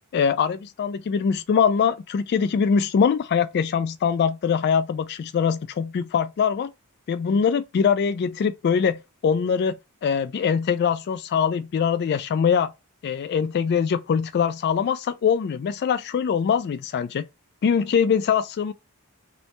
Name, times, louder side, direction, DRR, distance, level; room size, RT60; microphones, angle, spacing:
voice 1, 0.1-6.7 7.1-9.8 10.0-12.7 13.0-17.2 17.6-18.7, left 6 dB, 50° left, 0.3 m, -23 dB
3.2 x 3.1 x 4.0 m
head